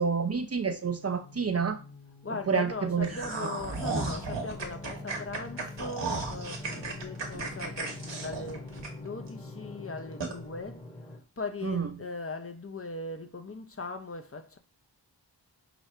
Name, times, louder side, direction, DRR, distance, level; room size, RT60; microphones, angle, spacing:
voice 1, 0.0-1.8 2.5-3.1 3.4-3.5 11.6-11.9, right 5 dB, 35° right, 0.5 m, -28 dB
sound 1, 0.9-10.2, left 3 dB, 65° left, 1.5 m, -49 dB
voice 2, 2.2-14.6, left 3 dB, 35° left, 0.5 m, -39 dB
sound 2, 3.0-9.3 9.7-9.8 10.2-10.3, right 3 dB, 75° right, 1.1 m, -35 dB
sound 3, 4.1-11.2, left 1 dB, 15° left, 0.9 m, -45 dB
5.0 x 2.6 x 3.2 m
wide cardioid pair, 60°, 43 cm